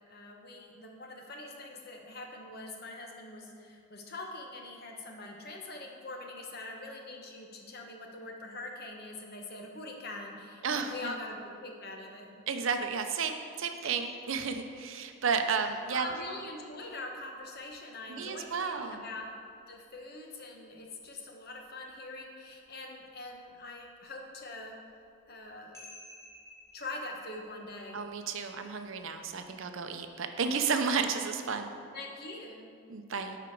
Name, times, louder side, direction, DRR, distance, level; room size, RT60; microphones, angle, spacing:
voice 1, 0.1-12.4 15.9-19.3 19.7-24.7 25.3-25.8 26.7-28.0 31.9-32.7, left 2 dB, 45° left, 1 dB, 1.1 m, -43 dB
voice 2, 10.6-11.1 12.5-16.1 18.1-19.0 27.9-31.7 32.9-33.4, right 5 dB, 65° right, 7 dB, 0.6 m, -32 dB
sound 1, 13.7-19.9 20.3-20.4 20.8-22.2 22.5-22.7 23.0-31.0, left 1 dB, 15° left, 1.3 m, -58 dB
12.0 x 5.0 x 4.6 m, 2.3 s
head